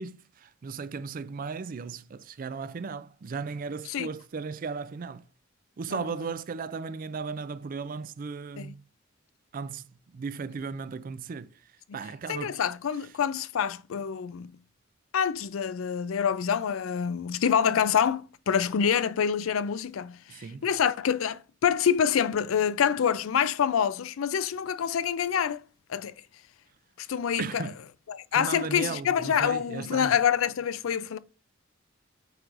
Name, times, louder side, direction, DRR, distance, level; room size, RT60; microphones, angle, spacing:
voice 1, 0.0-5.3 5.8-8.8 9.5-11.6 11.9-12.6 20.3-20.7 27.4-27.8 28.3-30.2, right 5 dB, 45° right, 0.4 m, -36 dB
voice 2, 12.3-14.6 15.1-25.6 25.9-26.1 27.0-27.6 28.1-31.2, left 8 dB, 85° left, 0.4 m, -26 dB
7.9 x 4.7 x 2.5 m
head